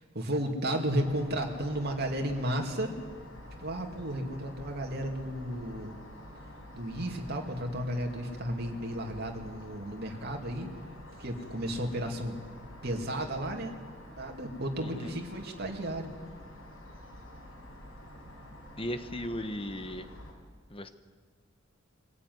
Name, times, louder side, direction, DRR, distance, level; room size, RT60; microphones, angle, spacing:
voice 1, 0.0-2.9 3.6-6.0 6.7-10.7 11.2-12.4 12.8-13.7 14.2-16.1, right 1 dB, 55° right, 2 dB, 2.7 m, -33 dB
sound 1, 0.9-20.3, left 1 dB, 85° left, 6.2 m, -48 dB
voice 2, 18.8-20.1 20.7-20.9, equal, 30° left, 10 dB, 1.2 m, -36 dB
23.0 x 15.0 x 9.6 m, 1.5 s
head